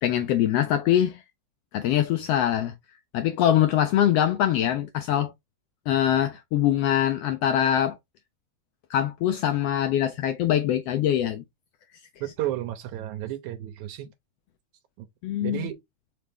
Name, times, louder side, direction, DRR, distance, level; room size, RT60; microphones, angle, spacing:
voice 1, 0.0-1.2 1.7-2.7 3.1-5.3 5.9-8.0 8.9-11.4 15.2-15.7, left 11 dB, 85° left, 1.4 m, -23 dB
voice 2, 12.2-14.1 15.0-15.1 15.4-15.8, right 13 dB, 85° right, 2.1 m, -32 dB
4.9 x 3.2 x 3.4 m
omnidirectional pair, 3.3 m